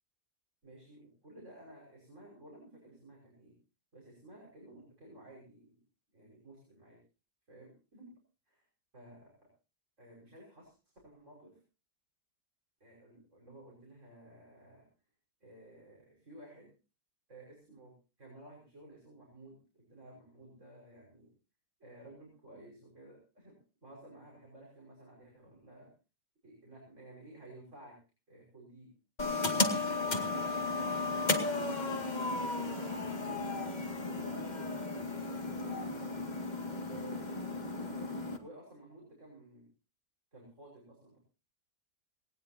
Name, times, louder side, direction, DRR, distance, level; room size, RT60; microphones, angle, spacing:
voice 1, 0.6-3.6 3.9-5.8 6.1-7.0 7.5-8.1 8.5-8.6 8.9-9.3 10.0-11.6 12.8-14.9 15.4-16.7 17.3-17.9 18.2-21.3 21.8-23.6 23.8-25.9 26.4-27.9 28.3-28.9 30.0-33.7 34.2-36.2 36.8-39.7 40.3-41.2, right 1 dB, 45° right, -2 dB, 6.0 m, -54 dB
sound 1, 29.2-38.4, left 3 dB, 25° left, 2.1 m, -34 dB
19.5 x 19.0 x 2.8 m, 0.34 s
omnidirectional pair, 1.8 m